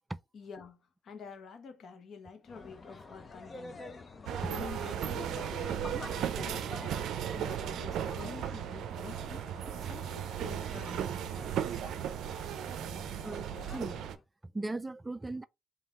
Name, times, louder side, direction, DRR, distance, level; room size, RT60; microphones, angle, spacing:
voice 1, 0.3-4.0 4.4-6.9 7.4-9.5 9.8-11.9, left 5 dB, 60° left, 0.8 m, -48 dB
sound 1, 2.4-14.2, left 4 dB, 35° left, 0.7 m, -47 dB
sound 2, 4.3-14.2, right 10 dB, 80° right, 0.4 m, -36 dB
voice 2, 13.2-14.0 14.5-15.4, right 2 dB, 15° right, 0.3 m, -37 dB
3.5 x 2.9 x 3.6 m
cardioid pair, 90°, 0 cm